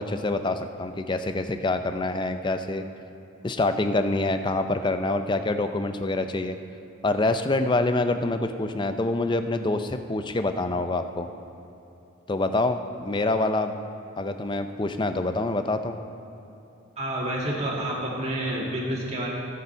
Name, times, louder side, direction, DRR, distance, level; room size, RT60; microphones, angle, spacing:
voice 1, 0.0-2.9 3.4-6.6 7.0-11.3 12.3-13.7 14.2-16.0, left 2 dB, 20° left, 8 dB, 0.4 m, -26 dB
voice 2, 17.0-19.3, right 1 dB, 30° right, -4 dB, 2.0 m, -29 dB
17.0 x 6.7 x 4.5 m, 2.9 s
head